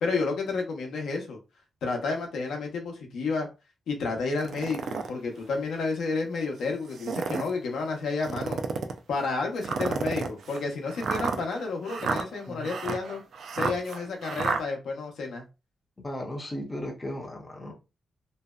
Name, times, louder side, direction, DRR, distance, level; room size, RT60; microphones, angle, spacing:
voice 1, 0.0-1.4 1.8-3.5 3.9-8.6 9.1-13.2 13.5-15.4, left 4 dB, 80° left, 0.7 m, -31 dB
sound 1, 4.4-5.1 5.7-5.8 6.8-7.5 8.2-9.0 9.6-14.6, right 5 dB, 55° right, 0.3 m, -31 dB
voice 2, 16.0-17.7, left 1 dB, 15° left, 0.5 m, -36 dB
2.6 x 2.1 x 2.2 m
wide cardioid pair, 175°, 0 cm